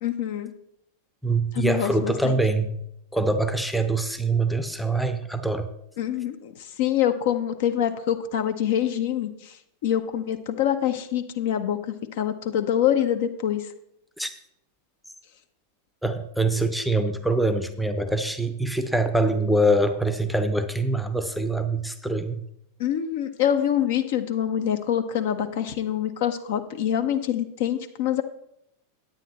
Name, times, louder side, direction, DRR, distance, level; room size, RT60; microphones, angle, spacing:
voice 1, 0.0-0.5 1.5-2.3 6.0-9.6 9.8-13.7 22.8-28.2, left 10 dB, 55° left, 8 dB, 0.8 m, -25 dB
voice 2, 1.2-2.8 3.1-5.7 14.2-14.3 16.0-22.4, right 2 dB, ahead, 9 dB, 0.7 m, -24 dB
9.4 x 9.1 x 4.1 m, 0.77 s
figure-of-eight pair, 90°, 0 cm